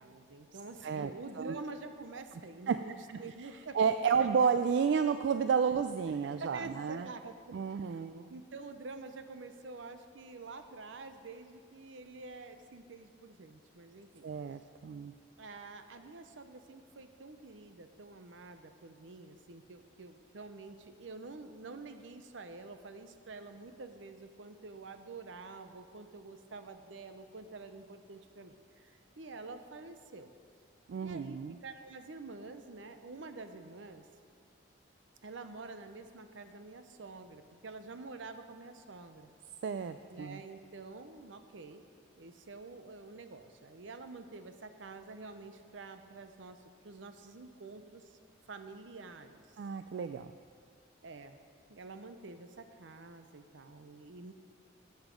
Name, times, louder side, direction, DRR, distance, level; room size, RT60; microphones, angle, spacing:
voice 1, 0.0-4.3 6.2-7.4 7.7-14.3 15.4-28.5 29.2-30.3 31.0-34.0 35.2-39.3 40.1-41.8 42.2-46.6 46.8-48.0 48.5-49.4 51.0-51.4 51.7-54.3, right 3 dB, 80° right, 8 dB, 0.7 m, -48 dB
voice 2, 3.1-3.5 3.7-7.1 7.5-8.3 14.2-15.1 30.9-31.6 39.6-40.4 49.6-50.3, right 6 dB, 65° right, 10 dB, 0.3 m, -31 dB
12.0 x 8.1 x 5.2 m, 2.1 s
head